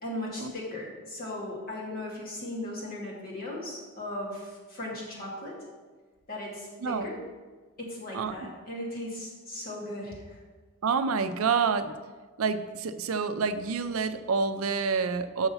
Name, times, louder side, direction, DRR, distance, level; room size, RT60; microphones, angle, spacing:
voice 1, 0.0-5.6 6.3-7.2 7.8-10.4, left 1 dB, 45° left, -5 dB, 2.6 m, -37 dB
voice 2, 10.8-11.9 12.4-15.5, right 5 dB, 80° right, 11 dB, 0.5 m, -28 dB
6.8 x 6.4 x 5.5 m, 1.4 s
head